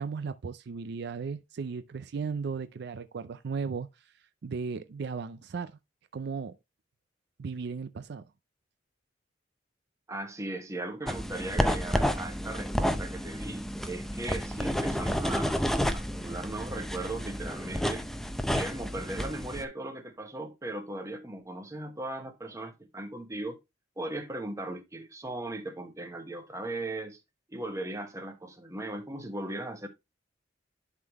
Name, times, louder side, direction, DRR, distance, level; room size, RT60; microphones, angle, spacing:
voice 1, 0.0-4.1 4.4-5.8 6.1-6.5 7.4-8.2, right 5 dB, 60° right, 0.4 m, -36 dB
voice 2, 10.1-18.1 18.5-23.6 24.0-27.2 27.5-29.9, right 2 dB, 15° right, 1.2 m, -38 dB
sound 1, 11.1-19.6, equal, ahead, 0.5 m, -31 dB
11.0 x 3.7 x 3.0 m
head